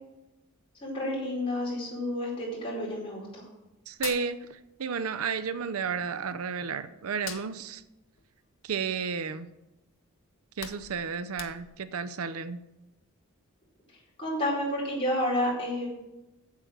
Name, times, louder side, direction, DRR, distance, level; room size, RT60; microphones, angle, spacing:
voice 1, 0.8-3.3 14.2-15.9, left 1 dB, 25° left, -5 dB, 4.6 m, -30 dB
Hands, 3.9-5.1 5.4-6.7 7.0-9.4 9.8-10.0 10.3-11.9, left 10 dB, 60° left, 0.8 m, -43 dB
voice 2, 3.9-7.8 8.6-9.5 10.6-12.6, right 6 dB, 75° right, 13 dB, 0.5 m, -32 dB
8.2 x 7.7 x 6.5 m, 0.98 s
head